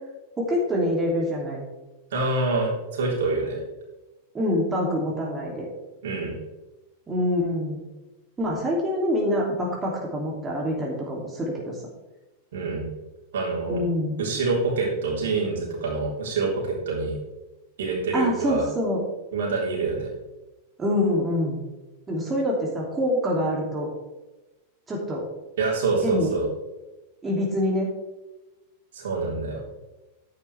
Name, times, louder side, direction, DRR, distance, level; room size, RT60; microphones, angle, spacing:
voice 1, 0.4-1.6 4.3-5.7 7.1-7.8 8.4-11.8 13.7-14.2 18.1-19.0 20.8-21.6 22.1-23.9 24.9-25.2 26.0-26.4 27.2-27.9, left 1 dB, 20° right, -2 dB, 2.7 m, -25 dB
voice 2, 2.1-3.6 6.0-6.3 12.5-12.9 13.3-13.8 14.2-17.2 17.8-18.7 19.3-20.1 25.6-26.5 28.9-29.6, right 3 dB, 65° right, -3 dB, 3.7 m, -26 dB
10.5 x 9.6 x 3.4 m, 1.1 s
figure-of-eight pair, 90°, 0 cm